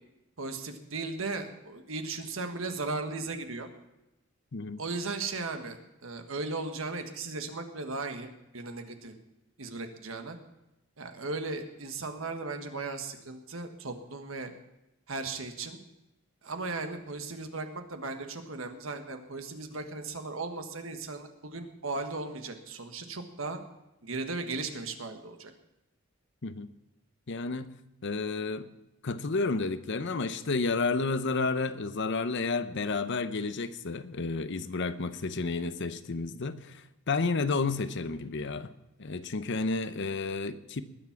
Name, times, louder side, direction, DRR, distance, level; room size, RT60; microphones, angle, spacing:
voice 1, 0.4-3.7 4.8-9.1 9.6-10.4 11.0-14.5 15.1-15.8 16.4-23.6 24.0-25.5, right 3 dB, 70° right, 6 dB, 1.5 m, -37 dB
voice 2, 27.3-27.7 28.0-28.7 29.0-38.7 39.0-40.8, left 3 dB, 60° left, 12 dB, 0.8 m, -31 dB
20.0 x 7.3 x 5.9 m, 0.94 s
head